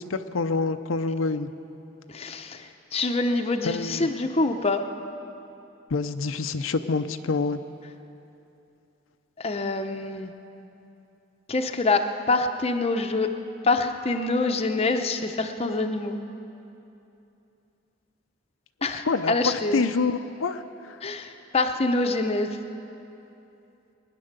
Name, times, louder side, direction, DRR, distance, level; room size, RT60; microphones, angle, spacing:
voice 1, 0.0-1.5 3.6-4.1 5.9-7.6 18.9-21.0, left 4 dB, 85° left, 8 dB, 0.6 m, -27 dB
voice 2, 2.1-4.8 9.4-10.3 11.5-13.3 13.6-16.2 18.8-19.9 21.0-22.6, left 3 dB, 30° left, 5 dB, 0.7 m, -25 dB
22.0 x 9.9 x 6.7 m, 2.9 s
head